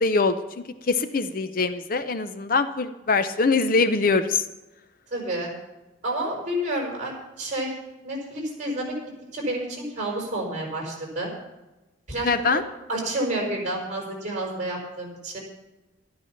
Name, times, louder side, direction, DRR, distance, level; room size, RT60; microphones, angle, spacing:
voice 1, 0.0-0.4 0.9-4.4 12.2-12.6, left 4 dB, 45° left, 10 dB, 0.6 m, -23 dB
voice 2, 5.1-5.5 6.0-7.8 8.0-8.9 9.3-11.3 12.1-12.6 12.9-15.4, right 1 dB, 35° right, -1 dB, 5.3 m, -29 dB
13.0 x 12.0 x 5.8 m, 1.1 s
head